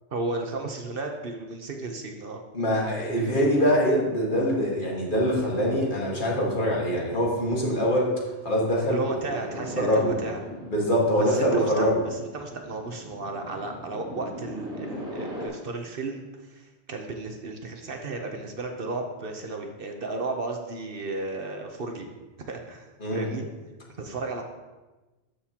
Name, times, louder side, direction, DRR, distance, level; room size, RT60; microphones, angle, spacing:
voice 1, 0.1-2.4 8.9-10.4 11.2-22.1 22.4-23.5 24.0-24.4, right 3 dB, 55° right, 4 dB, 1.0 m, -34 dB
voice 2, 2.5-9.2 9.8-10.1 10.7-12.0 23.0-23.3, equal, 45° left, -3 dB, 1.8 m, -24 dB
sound 1, 9.5-15.5, equal, 5° right, 2.7 m, -40 dB
13.0 x 6.6 x 2.9 m, 1.2 s
omnidirectional pair, 1.2 m